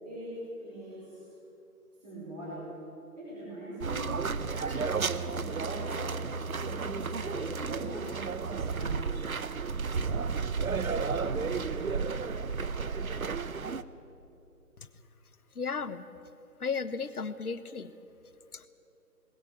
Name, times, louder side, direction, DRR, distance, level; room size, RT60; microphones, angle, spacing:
voice 1, 0.0-1.3 2.0-2.7 3.2-4.9 5.2-8.3 8.6-9.5 10.9-11.6, right 1 dB, 25° right, -8 dB, 4.8 m, -43 dB
sound 1, 3.8-13.8, right 5 dB, 65° right, 0.9 m, -32 dB
voice 2, 15.5-16.0 16.6-17.9 18.5-18.7, left 5 dB, 70° left, 13 dB, 1.3 m, -34 dB
20.0 x 17.5 x 8.8 m, 2.9 s
figure-of-eight pair, 175°, 46 cm